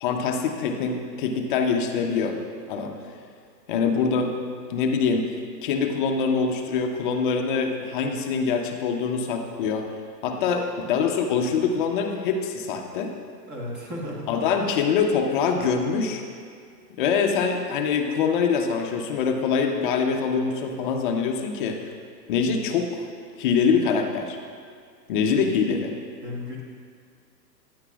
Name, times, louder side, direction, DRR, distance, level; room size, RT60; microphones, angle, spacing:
voice 1, 0.0-2.4 2.7-3.0 3.7-4.4 4.7-5.3 5.6-9.9 10.2-13.1 14.3-16.2 17.0-21.8 22.3-23.0 23.4-24.4 25.1-25.9, left 5 dB, 35° left, 4 dB, 0.5 m, -24 dB
voice 2, 13.5-14.4 26.2-26.6, left 1 dB, 20° right, -2 dB, 1.2 m, -34 dB
9.9 x 8.0 x 2.3 m, 2.2 s
hypercardioid pair, 135°, 49 cm